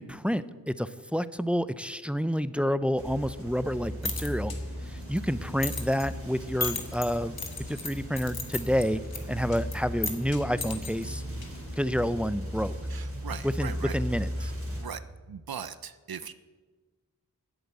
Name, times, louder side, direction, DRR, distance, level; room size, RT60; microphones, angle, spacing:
voice 1, 0.0-4.5 4.9-7.4 7.7-9.0 9.3-11.2 11.8-12.7 13.4-14.5, equal, 5° right, 15 dB, 0.5 m, -29 dB
sound 1, 3.0-14.8, equal, 35° right, 3.0 m, -37 dB
sound 2, 3.7-11.8, left 3 dB, 75° left, 1.4 m, -39 dB
voice 2, 12.9-14.0 14.4-14.5 14.8-15.0 15.3-16.3, right 7 dB, 75° right, 14 dB, 0.6 m, -39 dB
10.5 x 8.0 x 8.7 m, 1.4 s
wide cardioid pair, 40°, 36 cm